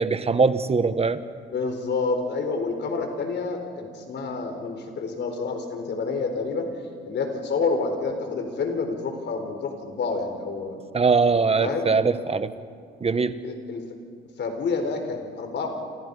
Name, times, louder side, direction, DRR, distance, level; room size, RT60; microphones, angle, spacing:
voice 1, 0.0-1.2 10.9-12.5 13.0-13.4, right 4 dB, 30° right, 12 dB, 1.3 m, -21 dB
voice 2, 1.4-6.8 7.0-10.8 11.6-11.9 13.4-13.8 14.4-15.7, left 4 dB, 60° left, 5 dB, 4.5 m, -28 dB
29.0 x 27.0 x 5.5 m, 2.2 s
cardioid pair, 90°, 20 cm